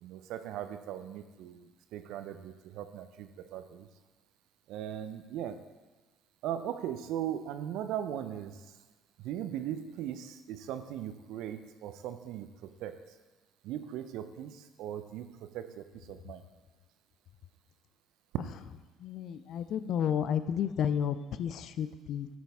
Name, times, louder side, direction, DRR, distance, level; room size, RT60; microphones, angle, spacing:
voice 1, 0.0-3.9 4.7-5.6 6.4-8.6 9.2-12.5 12.8-13.0 13.6-16.4, right 10 dB, 65° right, 9 dB, 0.6 m, -39 dB
voice 2, 19.0-22.3, left 8 dB, 55° left, 13 dB, 0.4 m, -31 dB
11.5 x 6.1 x 3.5 m, 1.2 s
hypercardioid pair, 55°, 0 cm